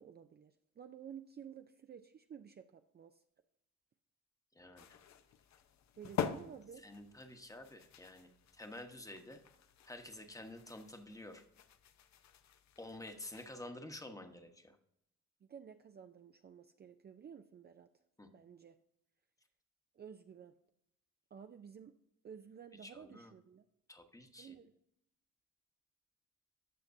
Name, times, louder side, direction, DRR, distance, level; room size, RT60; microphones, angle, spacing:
voice 1, 0.0-3.2 6.0-6.8 15.4-17.9 18.3-18.8 19.9-20.5 21.3-22.0 22.2-23.6 24.4-24.7, right 8 dB, 35° right, 7 dB, 0.5 m, -53 dB
voice 2, 4.5-4.9 6.8-9.4 9.9-11.4 12.8-14.8 18.2-18.3 22.8-23.3 23.9-24.5, left 1 dB, 10° left, 6 dB, 1.0 m, -50 dB
sound 1, 4.8-13.7, left 8 dB, 65° left, 0.8 m, -46 dB
14.0 x 5.8 x 2.6 m, 0.77 s
cardioid pair, 90°, 30 cm